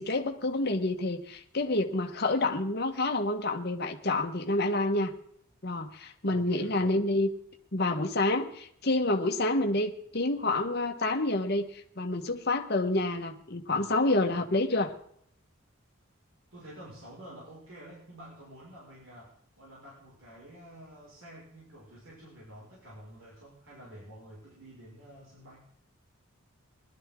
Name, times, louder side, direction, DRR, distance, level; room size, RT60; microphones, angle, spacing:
voice 1, 0.0-5.1 5.6-7.3 7.7-14.9, left 2 dB, 50° left, 4 dB, 1.4 m, -28 dB
voice 2, 6.2-7.0 16.5-25.7, right 1 dB, 65° right, -5 dB, 5.7 m, -49 dB
20.5 x 12.0 x 3.8 m, 0.66 s
head